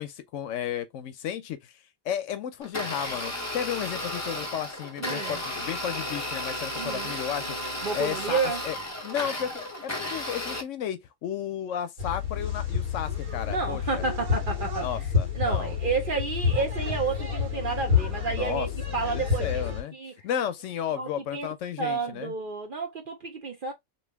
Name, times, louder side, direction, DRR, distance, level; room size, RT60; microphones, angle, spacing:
voice 1, 0.0-8.8 9.0-14.0 14.8-15.7 18.3-19.9 20.2-22.3, left 9 dB, 70° left, 0.9 m, -33 dB
Domestic sounds home sounds, 2.6-10.6, left 1 dB, 20° left, 0.5 m, -34 dB
voice 2, 5.0-5.4 6.8-7.1 7.8-8.6 13.5-14.9 15.3-19.6 19.9-20.1 21.0-21.5 21.8-23.7, right 4 dB, 55° right, 0.6 m, -30 dB
sound 1, 12.0-19.8, left 6 dB, 70° right, 1.8 m, -29 dB
3.1 x 2.7 x 3.4 m
omnidirectional pair, 1.4 m